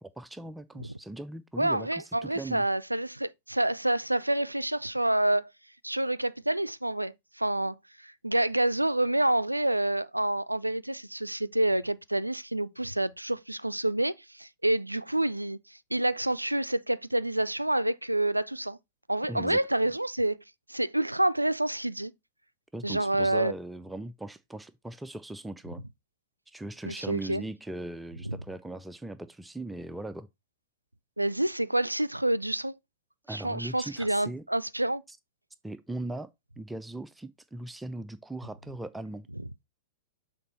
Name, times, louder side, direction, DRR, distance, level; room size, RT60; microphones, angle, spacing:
voice 1, 0.0-2.6 19.3-19.6 22.7-25.8 26.5-30.3 33.3-34.4 35.1-35.2 35.6-36.3 36.6-39.3, right 2 dB, 5° right, 0.4 m, -39 dB
voice 2, 1.6-5.4 5.8-7.8 8.0-15.6 15.9-18.8 19.1-20.4 20.7-22.1 22.8-23.5 26.8-27.4 28.2-28.4 31.2-32.8 33.3-35.0, right 1 dB, 90° right, 0.3 m, -28 dB
6.7 x 4.0 x 4.2 m
figure-of-eight pair, 100°, 0 cm